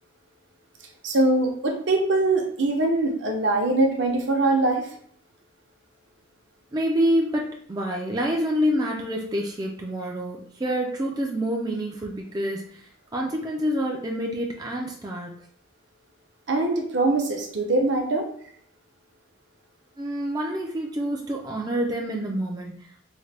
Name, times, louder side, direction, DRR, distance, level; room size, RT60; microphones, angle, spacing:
voice 1, 1.0-4.9 16.5-18.3, right 2 dB, 60° right, 2 dB, 0.6 m, -22 dB
voice 2, 6.7-15.3 20.0-23.0, equal, 20° right, -1 dB, 0.3 m, -27 dB
3.7 x 2.1 x 3.3 m, 0.63 s
head